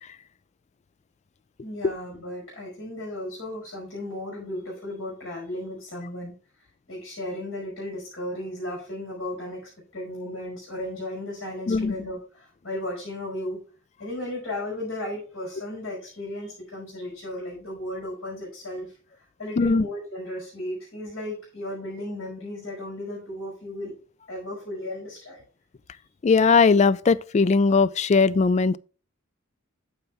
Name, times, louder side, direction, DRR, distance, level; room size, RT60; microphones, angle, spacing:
voice 1, 1.6-6.3 6.9-9.6 9.9-13.6 14.0-18.9 19.4-23.9 24.3-25.4, left 1 dB, 85° left, 4.9 m, -35 dB
voice 2, 26.2-28.8, left 4 dB, 35° left, 0.3 m, -19 dB
9.2 x 7.0 x 3.4 m
head